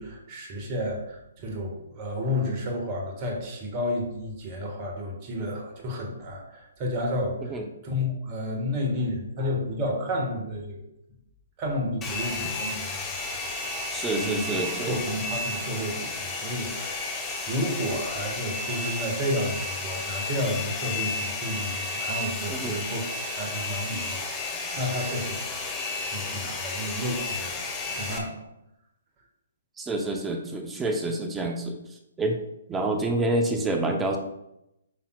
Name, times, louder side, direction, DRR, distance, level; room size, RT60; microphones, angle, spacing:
voice 1, 0.0-7.6 7.8-10.8 11.6-13.0 14.2-25.4 26.0-28.4, left 1 dB, 35° right, 1 dB, 1.6 m, -31 dB
Domestic sounds home sounds, 12.0-28.2, left 3 dB, 15° left, 1.1 m, -32 dB
voice 2, 13.9-15.0 22.5-22.8 29.8-31.8 32.2-32.4 32.7-34.2, right 2 dB, 10° right, 3 dB, 0.7 m, -27 dB
8.5 x 5.7 x 2.4 m, 0.85 s
figure-of-eight pair, 130°, 0 cm